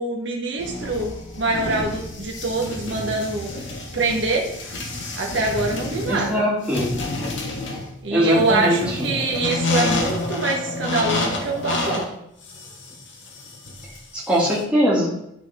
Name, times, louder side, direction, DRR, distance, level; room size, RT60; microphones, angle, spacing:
voice 1, 0.0-3.5 3.9-4.5 5.2-6.4 8.0-12.1, right 2 dB, 65° right, -1 dB, 1.1 m, -24 dB
sound 1, 0.6-14.6, left 2 dB, 65° left, 1.5 m, -29 dB
voice 2, 6.1-6.9 8.1-9.1 14.1-15.1, equal, 5° right, -6 dB, 2.2 m, -21 dB
12.0 x 4.1 x 3.5 m, 0.79 s
head